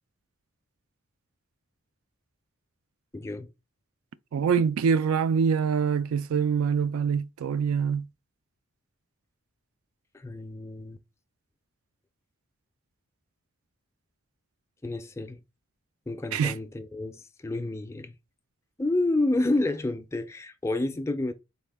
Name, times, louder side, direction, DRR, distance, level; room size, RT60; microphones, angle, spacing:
voice 1, 3.1-3.5 10.1-11.0 14.8-15.4 16.1-18.1 18.8-21.3, left 2 dB, 15° left, 0.3 m, -29 dB
voice 2, 4.3-8.0 16.3-16.5, right 6 dB, 75° right, 0.3 m, -25 dB
4.1 x 2.1 x 3.3 m
head